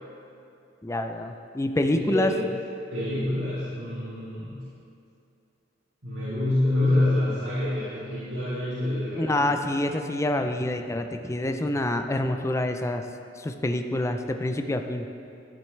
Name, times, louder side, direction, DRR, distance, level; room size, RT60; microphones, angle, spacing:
voice 1, 0.8-2.3 9.1-13.0 13.4-15.1, left 1 dB, 15° left, 6 dB, 0.4 m, -27 dB
voice 2, 1.9-2.4 2.9-4.6 6.0-9.5, left 1 dB, 80° right, -12 dB, 2.4 m, -27 dB
12.5 x 7.6 x 3.2 m, 2.6 s
head